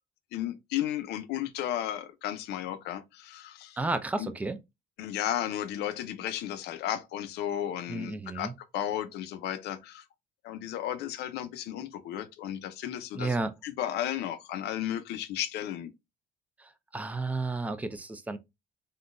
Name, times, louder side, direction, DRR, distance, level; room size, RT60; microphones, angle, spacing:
voice 1, 0.3-3.8 4.2-4.3 5.0-10.0 10.4-13.3 13.6-15.9, left 11 dB, 80° left, 0.5 m, -34 dB
voice 2, 3.8-4.6 7.9-8.5 13.2-13.5 16.6-18.4, right 3 dB, 10° right, 0.4 m, -32 dB
3.8 x 2.2 x 2.4 m
cardioid pair, 110°, 17 cm